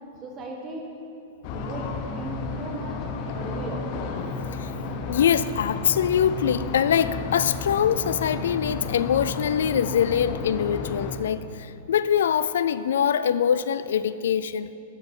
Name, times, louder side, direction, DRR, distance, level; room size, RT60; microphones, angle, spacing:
voice 1, 0.2-0.9 1.5-3.9, right 1 dB, 25° right, 0 dB, 1.6 m, -36 dB
sound 1, 1.4-11.2, left 4 dB, 45° left, 0.8 m, -32 dB
voice 2, 4.3-4.7 5.1-14.7, left 8 dB, 90° left, 14 dB, 0.3 m, -23 dB
12.5 x 8.1 x 3.8 m, 2.6 s
supercardioid pair, 150°, 0 cm